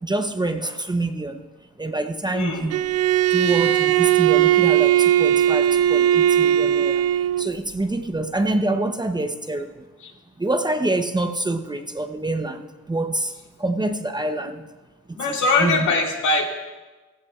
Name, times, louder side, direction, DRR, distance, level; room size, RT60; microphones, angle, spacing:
voice 1, 0.0-1.5 1.8-2.8 3.3-9.8 10.4-13.3 13.6-14.6 15.1-15.9, right 2 dB, 15° right, 7 dB, 0.7 m, -26 dB
Bowed string instrument, 2.7-7.5, right 11 dB, 55° right, 0.4 m, -18 dB
voice 2, 15.1-16.5, left 3 dB, 75° left, 0 dB, 2.3 m, -22 dB
16.0 x 15.0 x 2.4 m, 1.2 s
cardioid pair, 90°, 30 cm